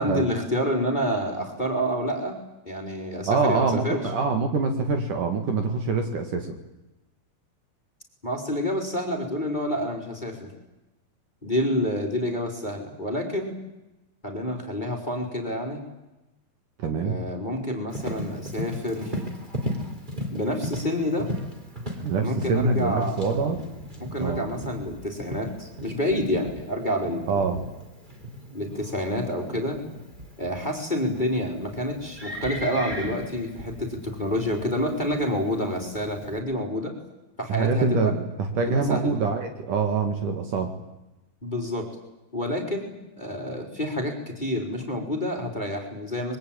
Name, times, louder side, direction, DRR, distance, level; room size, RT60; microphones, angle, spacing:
voice 1, 0.0-4.1 8.2-10.5 11.4-13.6 14.2-15.8 17.0-19.1 20.3-21.3 22.2-23.5 24.0-27.5 28.5-29.8 30.4-36.9 37.4-38.1 38.7-39.2 41.4-41.9 42.3-46.4, equal, 10° left, 2 dB, 3.6 m, -28 dB
voice 2, 3.3-6.6 16.8-17.2 22.0-23.6 24.2-24.5 27.3-27.6 37.5-40.7, right 4 dB, 60° right, 6 dB, 3.3 m, -25 dB
Livestock farm animals working animals, 17.9-36.4, equal, 15° right, 3.0 m, -37 dB
25.0 x 22.5 x 8.8 m, 0.98 s
omnidirectional pair, 4.5 m